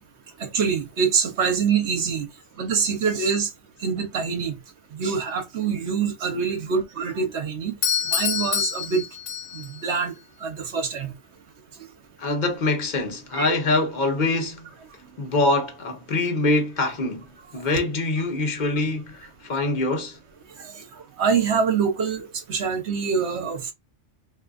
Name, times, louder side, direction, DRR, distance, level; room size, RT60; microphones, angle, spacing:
voice 1, 0.4-2.3 2.6-3.5 3.8-4.6 4.9-7.8 8.0-9.0 9.5-10.1 10.4-11.1 11.8-11.9 13.3-13.6 20.6-20.8 21.2-23.7, right 6 dB, 65° right, 1.1 m, -25 dB
Doorbell, 7.8-9.8, left 8 dB, 85° left, 1.1 m, -26 dB
voice 2, 12.2-14.7 15.2-17.3 17.5-20.2, left 2 dB, 40° left, 1.0 m, -24 dB
3.6 x 2.7 x 2.4 m
omnidirectional pair, 1.2 m